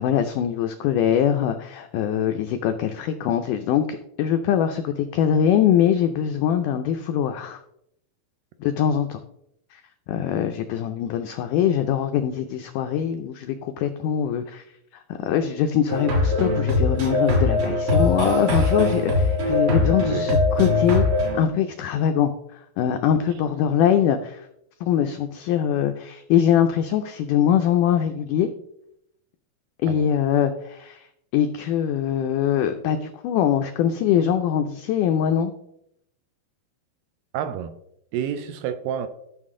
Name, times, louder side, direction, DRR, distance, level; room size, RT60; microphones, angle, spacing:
voice 1, 0.0-7.6 8.6-9.2 9.7-9.8 10.1-14.6 14.9-21.1 21.3-24.5 24.8-28.5 29.8-31.1 31.3-35.5, left 9 dB, 90° left, 1.8 m, -23 dB
sound 1, 15.9-21.4, left 2 dB, 50° right, 1.8 m, -21 dB
voice 2, 37.3-37.8 38.1-39.1, right 9 dB, 80° right, 2.2 m, -29 dB
12.5 x 6.0 x 3.7 m
omnidirectional pair, 4.3 m